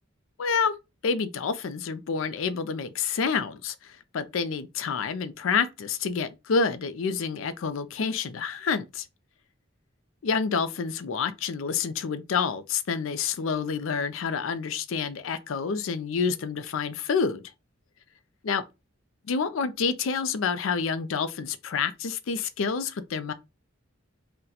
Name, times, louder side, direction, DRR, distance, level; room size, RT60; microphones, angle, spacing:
voice 1, 0.4-0.7 1.0-9.1 10.2-17.4 18.4-18.6 19.3-23.3, left 5 dB, 75° left, 0.4 m, -28 dB
2.8 x 2.2 x 3.8 m
head